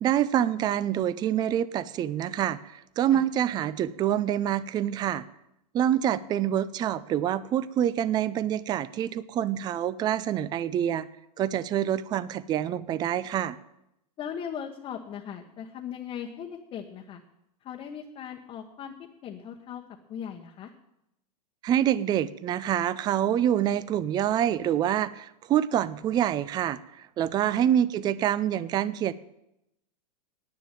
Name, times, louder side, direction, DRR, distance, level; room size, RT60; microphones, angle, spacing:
voice 1, 0.0-5.2 5.7-11.1 11.4-13.6 21.6-26.8 27.2-29.1, right 10 dB, 20° right, 17 dB, 0.4 m, -26 dB
voice 2, 14.2-17.2 17.6-18.9 19.2-19.8 20.1-20.7 27.5-27.6, left 8 dB, 25° left, 1 dB, 1.1 m, -38 dB
10.5 x 9.1 x 9.0 m, 0.85 s
hypercardioid pair, 135°, 21 cm